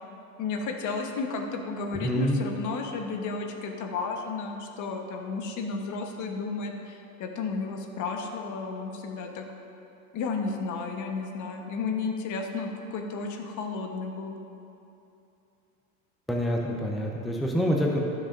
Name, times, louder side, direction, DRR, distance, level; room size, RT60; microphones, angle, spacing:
voice 1, 0.4-9.4 10.1-14.4, left 4 dB, 40° left, 3 dB, 1.2 m, -33 dB
voice 2, 2.0-2.4 16.3-18.0, equal, ahead, -1 dB, 0.8 m, -26 dB
16.5 x 6.5 x 2.6 m, 2.7 s
hypercardioid pair, 95°, 43 cm